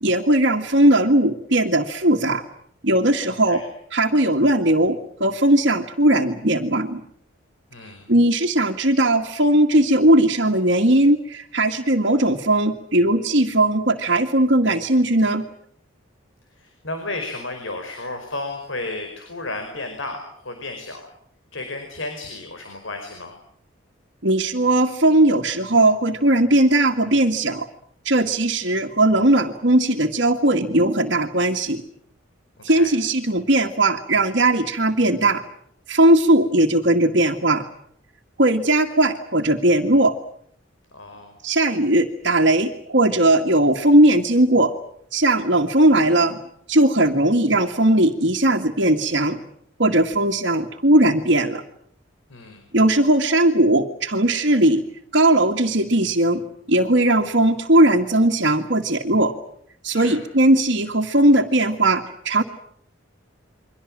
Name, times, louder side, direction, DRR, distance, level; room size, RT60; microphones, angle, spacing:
voice 1, 0.0-2.4 2.8-3.6 3.9-7.0 8.1-15.5 24.2-27.7 28.0-31.8 32.6-35.4 35.9-37.6 38.4-40.1 41.4-44.7 45.1-46.4 46.7-49.4 49.8-51.6 52.7-54.8 55.1-56.4 56.7-59.3 59.8-62.4, right 1 dB, 60° right, 0 dB, 1.9 m, -18 dB
voice 2, 3.3-3.6 7.7-8.1 16.5-21.1 21.5-23.4 32.6-32.9 40.9-41.4 52.3-52.6 59.9-60.2, left 2 dB, 75° left, 5 dB, 5.0 m, -33 dB
29.5 x 23.5 x 7.5 m, 0.67 s
head